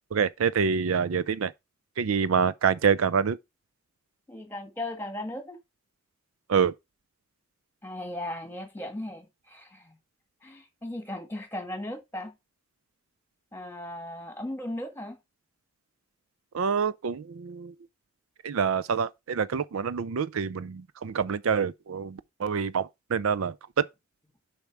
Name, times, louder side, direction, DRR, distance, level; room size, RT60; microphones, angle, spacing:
voice 1, 0.1-1.5 2.0-3.4 6.5-6.7 16.5-17.7 18.4-23.9, right 6 dB, 80° right, 0.5 m, -26 dB
voice 2, 4.3-5.6 7.8-9.9 10.4-12.3 13.5-15.2, left 1 dB, 10° left, 1.6 m, -37 dB
7.0 x 5.3 x 4.7 m
head